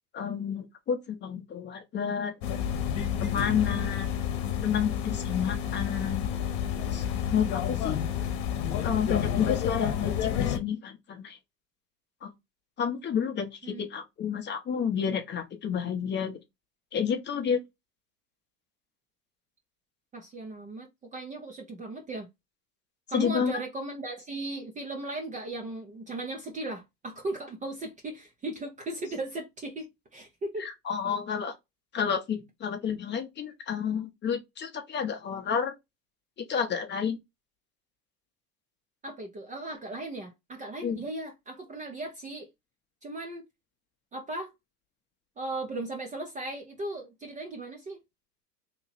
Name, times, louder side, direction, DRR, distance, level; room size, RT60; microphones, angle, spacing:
voice 1, 0.1-2.3 3.2-4.1 4.6-6.2 6.8-7.0 7.3-8.0 8.8-11.4 12.2-12.3 12.8-16.4 16.9-17.6 23.1-23.5 30.6-31.5 31.9-35.7 36.5-37.2 40.8-41.0, left 7 dB, 25° left, 0.7 m, -30 dB
sound 1, 2.4-10.6, left 9 dB, 45° left, 1.1 m, -30 dB
voice 2, 3.6-3.9 13.6-13.9 20.1-22.3 23.1-30.7 39.0-42.5 43.0-43.4 44.1-44.5 45.4-48.0, right 2 dB, 15° right, 0.5 m, -37 dB
3.0 x 2.8 x 4.0 m
hypercardioid pair, 105°, 47 cm